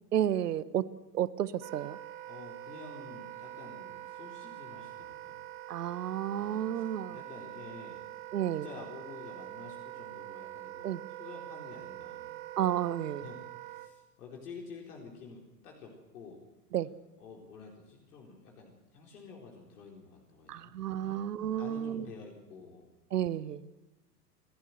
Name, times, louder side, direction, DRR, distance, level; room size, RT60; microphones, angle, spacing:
voice 1, 0.1-0.9 1.1-2.0 5.7-7.2 8.3-8.7 10.8-11.0 12.6-13.3 16.7-16.9 20.5-22.1 23.1-23.6, right 11 dB, 70° right, 17 dB, 1.1 m, -31 dB
Wind instrument woodwind instrument, 1.6-13.9, right 14 dB, 40° right, 1.8 m, -45 dB
voice 2, 2.3-5.4 6.4-8.0 8.6-12.3 13.2-16.4 17.2-21.2 21.5-22.8, left 4 dB, 65° left, 0 dB, 4.3 m, -50 dB
28.5 x 12.0 x 8.0 m, 1.1 s
figure-of-eight pair, 100°, 49 cm